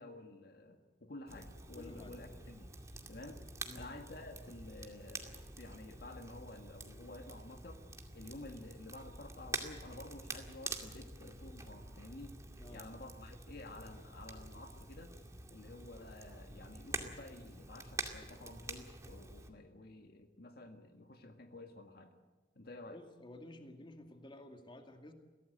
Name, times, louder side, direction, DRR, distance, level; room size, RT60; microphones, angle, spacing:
voice 1, 0.0-2.7 3.1-3.4 3.7-7.8 8.1-12.4 12.7-15.1 15.5-22.1 22.6-23.0, left 2 dB, 60° left, 5 dB, 1.8 m, -51 dB
Crackle, 1.3-19.5, right 2 dB, 20° right, 2.3 m, -47 dB
voice 2, 1.7-2.1 3.7-3.9 12.6-12.9 22.9-25.1, left 1 dB, 30° left, 4 dB, 2.2 m, -53 dB
23.0 x 17.0 x 8.0 m, 1.3 s
head